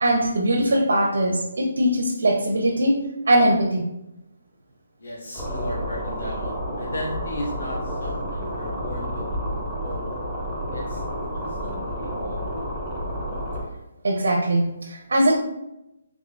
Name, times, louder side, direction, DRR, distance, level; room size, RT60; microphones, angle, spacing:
voice 1, 0.0-3.0 3.3-3.8 14.0-15.3, right 1 dB, 85° right, 0 dB, 0.6 m, -21 dB
voice 2, 5.0-10.1 10.7-11.0 11.3-12.4, equal, 75° left, -4 dB, 1.1 m, -36 dB
sound 1, 5.3-13.6, equal, 5° left, 0.7 m, -30 dB
3.6 x 3.5 x 2.5 m, 0.89 s
hypercardioid pair, 175°, 0 cm